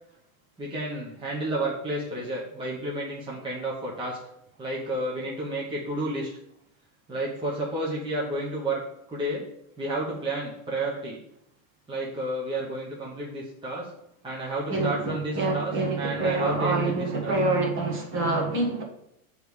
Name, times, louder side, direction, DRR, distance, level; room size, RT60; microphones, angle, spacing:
voice 1, 0.6-4.2 4.6-6.3 7.1-8.8 9.1-9.5 9.8-11.2 11.9-13.9 14.2-16.9 17.2-17.3, right 1 dB, 10° right, -5 dB, 1.1 m, -31 dB
voice 2, 14.7-18.8, right 2 dB, 30° right, 1 dB, 1.4 m, -26 dB
6.8 x 3.6 x 6.3 m, 0.78 s
supercardioid pair, 155°, 42 cm